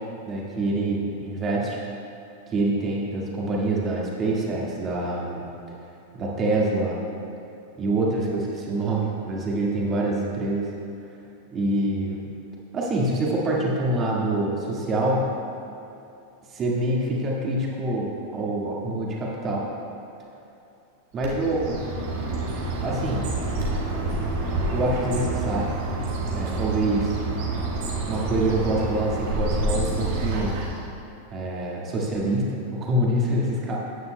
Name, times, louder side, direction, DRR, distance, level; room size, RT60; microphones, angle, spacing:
voice 1, 0.2-1.8 2.5-5.8 6.1-7.0 7.8-10.7 11.5-12.2 12.7-15.3 16.5-19.6 21.1-21.8 22.8-23.3 24.7-25.7 26.3-27.1 28.0-30.6 31.3-33.8, right 1 dB, 25° right, -3 dB, 1.8 m, -26 dB
Bird, 21.2-30.9, right 2 dB, 50° right, 1.4 m, -28 dB
13.0 x 9.3 x 2.2 m, 2.7 s
figure-of-eight pair, 90°, 0 cm